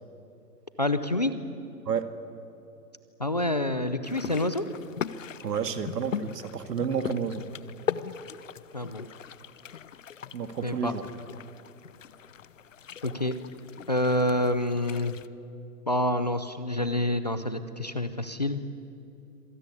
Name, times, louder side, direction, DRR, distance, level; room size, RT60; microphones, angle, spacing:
voice 1, 0.8-1.3 3.2-4.7 8.7-9.1 10.6-10.9 13.0-13.3 13.9-15.2 15.9-18.6, left 1 dB, 25° left, 11 dB, 0.6 m, -27 dB
sound 1, 4.0-15.3, left 8 dB, 50° left, 0.9 m, -39 dB
voice 2, 5.4-7.5 10.3-11.1, right 7 dB, 75° right, 9 dB, 2.1 m, -30 dB
26.0 x 17.5 x 9.7 m, 2.6 s
hypercardioid pair, 180°, 48 cm